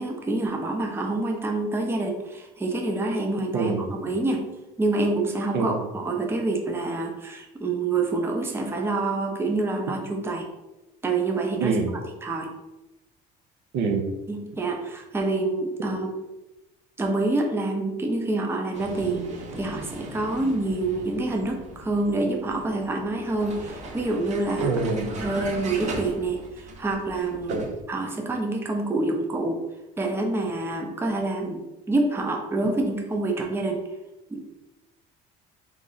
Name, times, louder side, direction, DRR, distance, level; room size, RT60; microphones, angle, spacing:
voice 1, 0.0-4.5 4.8-10.5 11.0-11.8 12.2-12.5 14.3-16.1 17.0-24.7 25.2-27.6 27.9-29.6 30.0-31.6 31.9-33.8 34.3-34.4, right 2 dB, 15° right, 2 dB, 0.6 m, -27 dB
voice 2, 3.5-3.8 5.5-5.9 11.6-11.9 13.7-14.1 24.6-25.1 27.5-27.7, right 4 dB, 75° right, 4 dB, 0.7 m, -25 dB
Vehicle, 18.7-27.8, right 2 dB, 40° right, 0.8 m, -38 dB
3.6 x 3.2 x 3.9 m, 0.99 s
cardioid pair, 135°, 18 cm